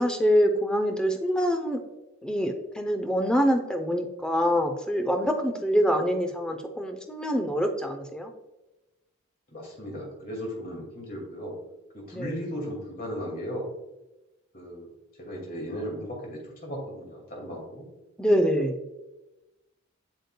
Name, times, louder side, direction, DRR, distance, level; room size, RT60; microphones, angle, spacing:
voice 1, 0.0-1.8 2.2-8.3 12.1-12.4 18.2-18.8, equal, 5° left, 4 dB, 0.5 m, -25 dB
voice 2, 9.5-11.5 11.9-13.7 14.5-14.9 15.2-17.9, equal, 40° left, -1 dB, 2.1 m, -36 dB
7.7 x 6.9 x 2.2 m, 1.0 s
head